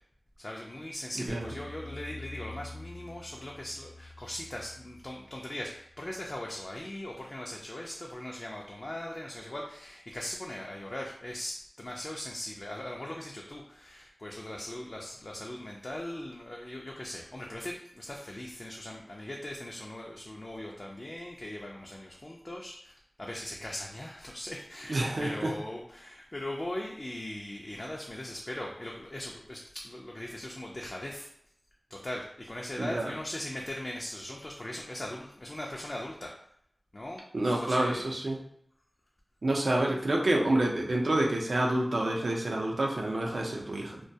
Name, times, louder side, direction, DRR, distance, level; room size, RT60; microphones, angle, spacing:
voice 1, 0.4-29.6 29.8-31.3 31.9-36.3 36.9-38.0, left 1 dB, 45° left, -1 dB, 0.3 m, -40 dB
voice 2, 1.2-1.5 24.9-25.5 32.8-33.1 37.3-38.4 39.4-44.0, right 1 dB, 85° right, -1 dB, 0.5 m, -28 dB
sound 1, 1.3-6.5, left 2 dB, 60° left, 0.8 m, -47 dB
2.2 x 2.2 x 2.7 m, 0.72 s
wide cardioid pair, 60°, 0 cm